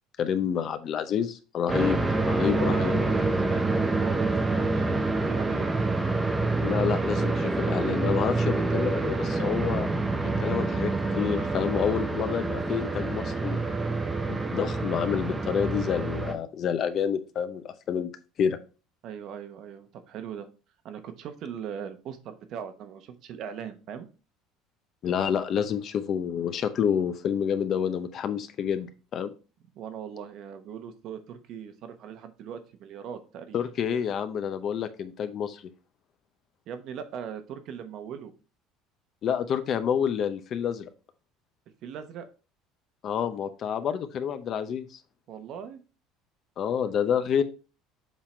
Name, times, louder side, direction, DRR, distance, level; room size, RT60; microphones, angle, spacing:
voice 1, 0.2-2.0 2.3-3.0 6.6-9.9 10.2-13.6 14.3-18.1 18.4-18.6 25.0-28.9 29.1-29.3 33.5-35.6 39.2-40.9 43.0-44.9 46.6-47.4, left 8 dB, 40° left, 10 dB, 0.6 m, -28 dB
sound 1, 1.7-16.3, right 2 dB, 10° right, 0.7 m, -27 dB
voice 2, 2.5-5.7 19.0-20.5 20.8-24.1 29.7-33.6 36.7-38.3 41.8-42.3 45.3-45.8, right 8 dB, 50° right, 9 dB, 0.9 m, -39 dB
7.3 x 3.7 x 4.4 m, 0.34 s
cardioid pair, 155°, 0 cm